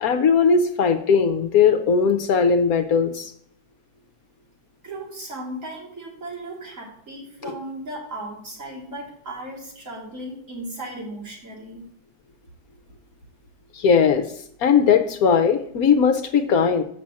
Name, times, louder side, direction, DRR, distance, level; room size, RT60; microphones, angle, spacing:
voice 1, 0.0-3.3 7.4-7.5 13.7-14.2 14.6-16.8, left 6 dB, 70° left, 8 dB, 1.1 m, -19 dB
voice 2, 4.8-11.9, right 1 dB, 50° right, -4 dB, 3.3 m, -36 dB
6.8 x 6.0 x 7.5 m, 0.65 s
omnidirectional pair, 1.7 m